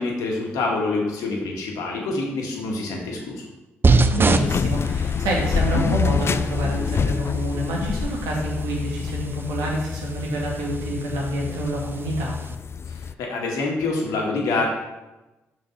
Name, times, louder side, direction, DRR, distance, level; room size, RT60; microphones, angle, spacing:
voice 1, 0.0-3.4 12.9-14.7, left 3 dB, 75° left, -1 dB, 1.9 m, -26 dB
sound 1, 3.8-12.5, right 3 dB, 35° right, 0.7 m, -27 dB
voice 2, 4.1-12.4, right 1 dB, 80° right, -2 dB, 2.0 m, -27 dB
sound 2, 4.3-13.1, left 6 dB, 45° left, 0.4 m, -27 dB
6.3 x 6.0 x 5.8 m, 1.0 s
hypercardioid pair, 40°, 6 cm